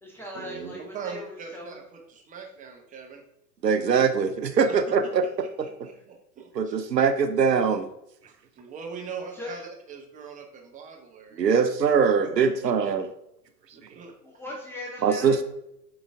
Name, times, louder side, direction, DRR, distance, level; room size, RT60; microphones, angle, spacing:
voice 1, 0.0-1.8 5.9-6.0 9.0-9.7 14.2-15.4, left 1 dB, 5° left, -3 dB, 0.6 m, -40 dB
voice 2, 0.9-3.2 4.6-4.8 5.6-6.7 8.3-9.6 9.9-11.5 12.2-12.5 13.7-14.1, right 6 dB, 15° right, 2 dB, 1.0 m, -41 dB
voice 3, 3.6-5.2 5.6-5.7 6.5-7.9 11.3-13.1 15.0-15.4, right 6 dB, 75° right, 9 dB, 0.7 m, -22 dB
7.8 x 3.9 x 3.5 m, 0.80 s
figure-of-eight pair, 95°, 50 cm